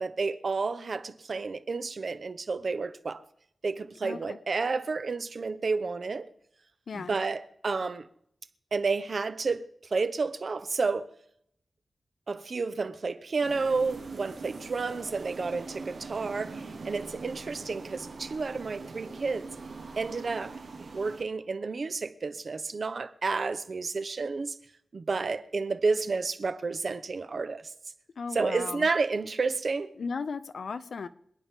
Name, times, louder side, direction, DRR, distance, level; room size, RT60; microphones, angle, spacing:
voice 1, 0.0-3.2 3.6-6.3 6.9-8.1 8.7-11.1 12.3-19.5 20.0-24.5 24.9-27.7 28.3-29.9, right 4 dB, 55° right, 0.8 m, -31 dB
voice 2, 4.0-4.4 6.9-7.2 28.2-28.9 30.0-31.1, left 5 dB, 75° left, 0.7 m, -36 dB
sound 1, 13.4-21.2, right 4 dB, 85° right, 2.2 m, -43 dB
26.5 x 9.6 x 3.7 m
wide cardioid pair, 140°, 0 cm